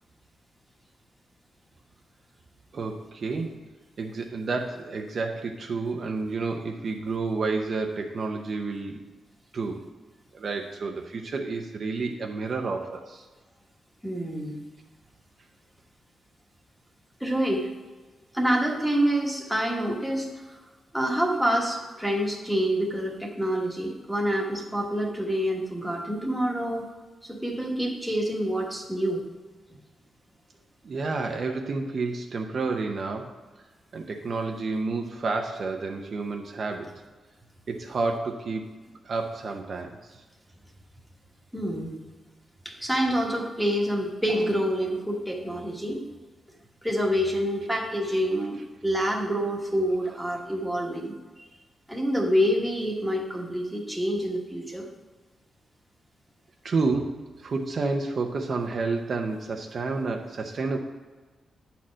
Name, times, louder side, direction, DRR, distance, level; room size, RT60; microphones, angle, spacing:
voice 1, 2.7-3.6 4.0-9.0 9.5-9.8 10.3-13.3 30.8-33.4 33.9-37.0 37.7-38.7 39.0-40.2 56.6-60.8, right 3 dB, 45° right, 3 dB, 0.6 m, -30 dB
voice 2, 14.0-14.6 17.2-17.7 18.3-20.6 20.9-26.9 27.2-29.2 41.5-41.9 42.6-46.0 46.8-51.1 51.4-51.5 51.9-54.8, equal, ahead, -1 dB, 1.3 m, -27 dB
9.0 x 4.3 x 6.2 m, 1.3 s
wide cardioid pair, 155°, 0 cm